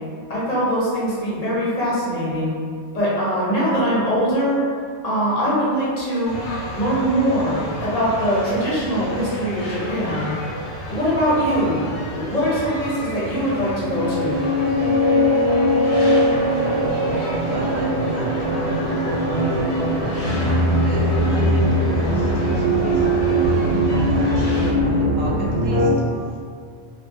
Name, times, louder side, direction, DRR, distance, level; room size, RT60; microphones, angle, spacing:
voice 1, 0.3-2.5 2.9-4.6 5.0-6.3 6.7-10.3 10.9-11.8 12.1-14.4, equal, 40° left, -9 dB, 0.8 m, -22 dB
sound 1, 6.2-24.7, equal, 85° left, 0.9 m, -32 dB
sound 2, 13.0-25.9, equal, 90° right, 0.9 m, -20 dB
voice 2, 17.4-25.9 26.3-26.4, equal, 55° right, -5 dB, 0.5 m, -36 dB
2.1 x 2.1 x 3.3 m, 2.1 s
omnidirectional pair, 1.1 m